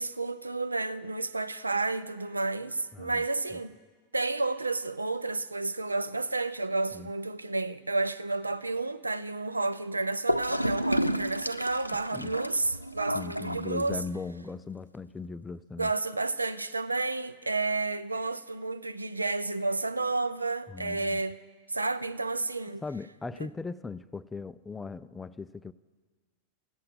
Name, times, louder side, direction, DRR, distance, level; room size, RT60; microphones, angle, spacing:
voice 1, 0.0-3.8 4.1-14.0 15.8-21.4 21.7-22.8, right 3 dB, 80° right, 0.4 m, -31 dB
voice 2, 2.9-3.3 3.5-3.6 6.9-7.1 12.1-12.4 13.1-15.9 20.7-21.2 22.8-25.7, left 4 dB, 10° left, 0.3 m, -39 dB
Gurgling / Toilet flush, 10.3-14.3, equal, 90° left, 0.3 m, -31 dB
17.0 x 7.6 x 6.3 m
figure-of-eight pair, 90°, 0 cm